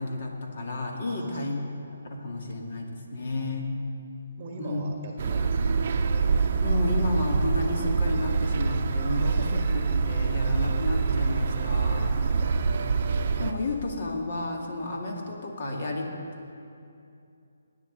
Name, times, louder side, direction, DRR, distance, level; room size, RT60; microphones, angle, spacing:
voice 1, 0.0-1.6 1.9-3.8 4.6-4.8 6.6-12.2 13.4-16.2, left 2 dB, 50° left, 0 dB, 2.0 m, -32 dB
voice 2, 1.1-1.5 2.1-2.5 4.4-5.8 9.2-9.6 12.2-12.6, right 3 dB, 20° right, 1 dB, 1.4 m, -42 dB
sound 1, 5.2-13.5, right 4 dB, 45° right, 0.7 m, -25 dB
20.0 x 9.3 x 3.9 m, 2.6 s
hypercardioid pair, 165°, 0 cm